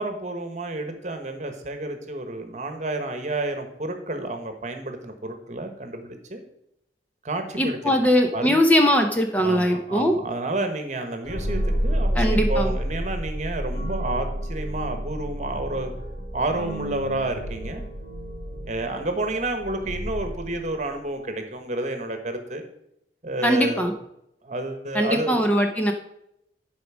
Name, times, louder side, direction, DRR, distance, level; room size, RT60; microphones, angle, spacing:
voice 1, 0.0-6.4 7.2-8.6 9.4-15.9 16.3-17.8 18.5-22.6 23.2-23.9 24.4-25.4, right 2 dB, 40° right, 6 dB, 1.2 m, -30 dB
voice 2, 7.6-10.1 12.2-12.7 23.4-23.9 24.9-25.9, equal, 10° left, 3 dB, 0.7 m, -21 dB
sound 1, 11.2-20.9, equal, 45° left, 3.5 m, -29 dB
10.5 x 5.1 x 4.9 m, 0.79 s
head